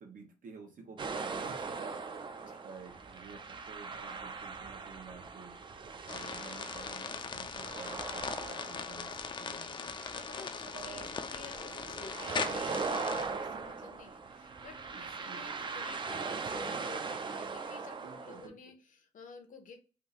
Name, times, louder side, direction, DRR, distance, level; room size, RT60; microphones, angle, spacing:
voice 1, 0.0-5.6 6.1-9.1 9.4-9.9 10.7-11.1 14.9-15.4 18.0-18.6, right 4 dB, 85° right, 3 dB, 1.0 m, -51 dB
sound 1, 1.0-18.5, right 4 dB, 35° right, 0.3 m, -40 dB
sound 2, 6.1-13.2, left 5 dB, 35° left, 0.3 m, -40 dB
voice 2, 10.1-19.8, left 4 dB, 75° left, 5 dB, 0.8 m, -51 dB
3.5 x 2.5 x 2.9 m, 0.36 s
wide cardioid pair, 165°, 14 cm